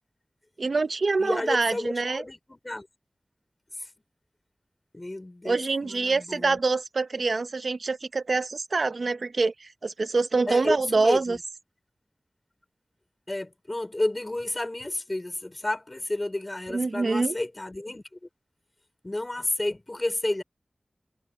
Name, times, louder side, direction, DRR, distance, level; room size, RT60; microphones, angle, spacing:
voice 1, 0.6-2.2 5.4-11.4 16.7-17.4, right 3 dB, 85° right, 0.7 m, -25 dB
voice 2, 1.2-2.9 4.9-6.6 10.5-11.4 13.3-18.2 19.0-20.4, left 1 dB, 35° left, 4.5 m, -31 dB
wide cardioid pair, 60°, 0 cm